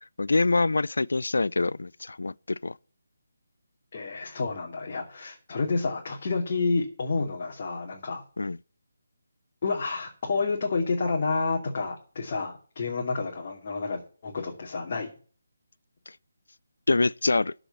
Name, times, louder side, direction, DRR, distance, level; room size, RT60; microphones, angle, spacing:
voice 1, 0.2-2.7 8.4-8.6 16.9-17.5, left 3 dB, 70° left, 0.5 m, -25 dB
voice 2, 3.9-8.2 9.6-15.1, left 4 dB, 40° left, 2.6 m, -29 dB
14.0 x 5.0 x 7.2 m
figure-of-eight pair, 150°, 0 cm